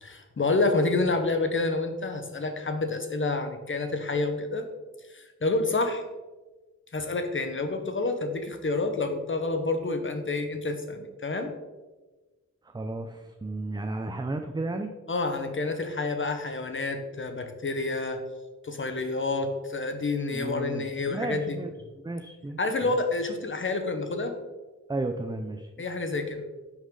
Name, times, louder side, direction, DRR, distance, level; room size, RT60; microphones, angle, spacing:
voice 1, 0.0-4.6 5.1-6.0 6.9-11.5 15.1-18.2 18.6-21.6 22.6-24.3 25.8-26.4, left 3 dB, 45° left, 6 dB, 1.1 m, -28 dB
voice 2, 12.6-14.9 20.3-21.7 22.0-23.0 24.9-25.7, right 2 dB, 15° right, 6 dB, 0.5 m, -33 dB
10.0 x 6.3 x 3.8 m, 1.2 s
wide cardioid pair, 130°, 29 cm